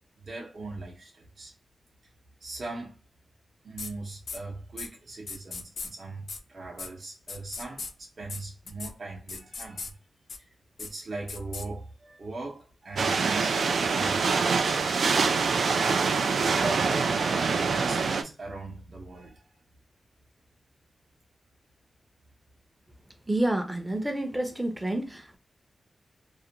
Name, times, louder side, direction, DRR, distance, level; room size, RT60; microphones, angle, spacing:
voice 1, 0.2-1.5 2.4-3.0 3.6-10.0 10.4-14.5 14.9-15.2 16.3-19.5, right 2 dB, 55° right, 0.7 m, -39 dB
sound 1, 3.8-3.9 4.3-4.4 4.8-4.9 5.3-5.9 6.3-6.4 6.8-6.9 7.3-7.9 8.3-8.4 8.7-8.9 9.3-9.9 10.3-10.4 10.8-10.9 11.3-11.7, left 4 dB, 75° left, 0.4 m, -37 dB
sound 2, 13.0-18.2, right 5 dB, 85° right, 0.3 m, -25 dB
voice 2, 23.3-25.4, right 1 dB, 10° right, 0.5 m, -29 dB
2.4 x 2.1 x 2.8 m
wide cardioid pair, 115°, 0 cm